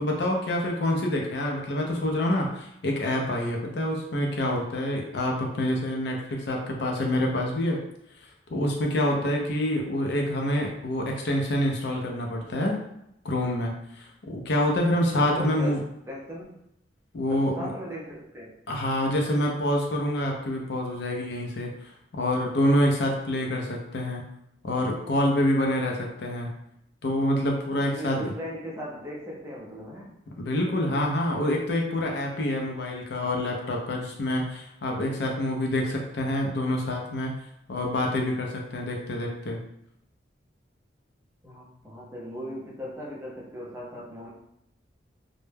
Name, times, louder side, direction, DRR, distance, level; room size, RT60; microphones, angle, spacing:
voice 1, 0.0-7.8 8.5-12.8 13.2-15.8 17.1-17.7 18.7-24.2 24.6-26.5 27.0-28.2 30.4-37.3 37.7-39.6, left 1 dB, 60° left, 0 dB, 0.5 m, -27 dB
voice 2, 15.1-15.8 16.1-16.5 17.3-18.5 27.7-30.1 41.4-44.3, equal, 15° right, -4 dB, 0.5 m, -38 dB
2.1 x 2.0 x 3.2 m, 0.78 s
head